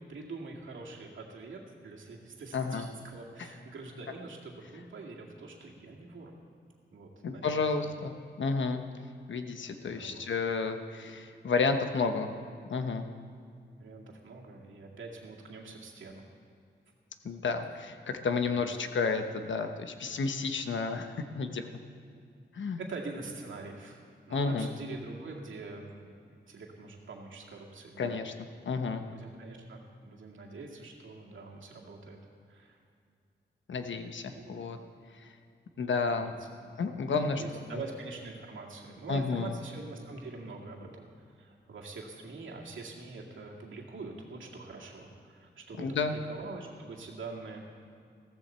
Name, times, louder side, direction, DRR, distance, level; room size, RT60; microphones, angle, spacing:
voice 1, 0.0-6.3 6.9-7.9 9.8-10.2 11.0-11.1 13.8-16.2 18.5-18.6 22.8-24.0 24.3-28.2 29.0-32.2 32.5-32.8 33.7-33.9 34.3-34.6 35.7-36.3 37.1-41.1 41.4-47.6, right 3 dB, 90° right, -1 dB, 2.2 m, -44 dB
voice 2, 2.5-2.9 7.2-8.1 8.4-8.8 9.3-12.3 12.7-13.1 17.2-21.1 21.3-21.7 22.5-22.8 24.3-24.7 28.0-28.3 28.6-29.0 33.7-34.8 35.2-35.3 35.8-36.3 36.8-37.4 39.1-39.5 45.8-46.1, left 4 dB, 75° left, 7 dB, 1.0 m, -31 dB
15.5 x 14.5 x 4.4 m, 2.4 s
wide cardioid pair, 95°, 19 cm